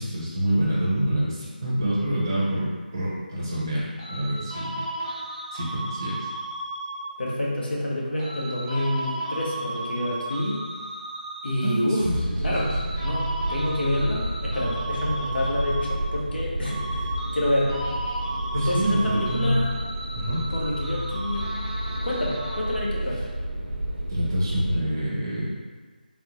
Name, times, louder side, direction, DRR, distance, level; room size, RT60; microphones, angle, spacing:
voice 1, 0.0-4.9 5.5-6.3 11.6-12.8 18.5-19.6 20.1-20.4 24.1-25.5, right 1 dB, 20° right, -7 dB, 0.6 m, -27 dB
sound 1, 4.0-7.3 8.2-12.0 12.4-16.4 16.6-23.0, right 1 dB, 35° left, 1.0 m, -35 dB
voice 2, 7.2-10.6 11.4-12.1 12.4-12.7 13.0-17.8 18.5-19.7 20.5-21.5 22.0-23.3, left 1 dB, 90° left, -5 dB, 1.1 m, -28 dB
sound 2, 12.0-24.8, right 1 dB, 85° right, 0.5 m, -31 dB
3.4 x 2.5 x 3.0 m, 1.4 s
figure-of-eight pair, 180°, 5 cm